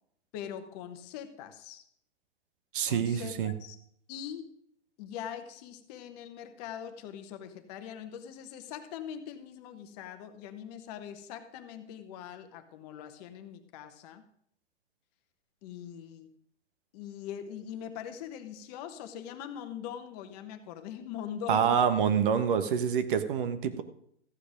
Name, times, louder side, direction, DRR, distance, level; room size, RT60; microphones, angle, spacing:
voice 1, 0.3-1.8 2.9-3.8 4.1-4.6 5.0-14.2 15.6-16.4 16.9-21.9, left 9 dB, 35° left, 8 dB, 1.3 m, -42 dB
voice 2, 2.7-3.5 21.5-23.8, right 7 dB, 45° right, 10 dB, 1.2 m, -26 dB
14.5 x 8.4 x 5.1 m, 0.67 s
figure-of-eight pair, 120°, 35 cm